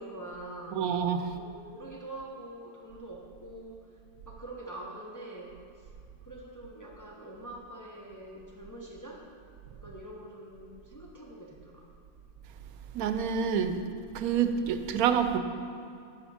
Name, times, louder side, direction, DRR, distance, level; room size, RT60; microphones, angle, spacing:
voice 1, 0.0-0.8 1.2-3.9 4.3-5.9 6.2-9.3 9.7-11.9, right 1 dB, 20° left, -2 dB, 0.6 m, -45 dB
voice 2, 0.7-1.3 12.9-13.8 14.1-15.4, right 7 dB, 85° right, 8 dB, 1.0 m, -27 dB
10.0 x 5.6 x 4.2 m, 2.5 s
omnidirectional pair, 1.5 m